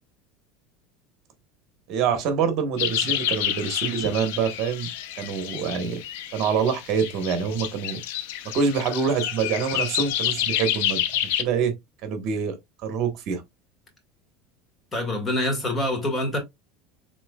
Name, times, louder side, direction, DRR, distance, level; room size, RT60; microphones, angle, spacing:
voice 1, 1.9-4.9 5.2-6.0 6.3-8.0 8.5-11.0 11.4-11.7 12.0-12.6 12.8-13.4, right 6 dB, 50° right, 1.3 m, -25 dB
sound 1, 2.8-11.4, left 11 dB, 80° left, 0.7 m, -29 dB
voice 2, 14.9-16.4, left 1 dB, 20° left, 2.0 m, -25 dB
6.0 x 3.5 x 2.3 m
supercardioid pair, 145°, 0 cm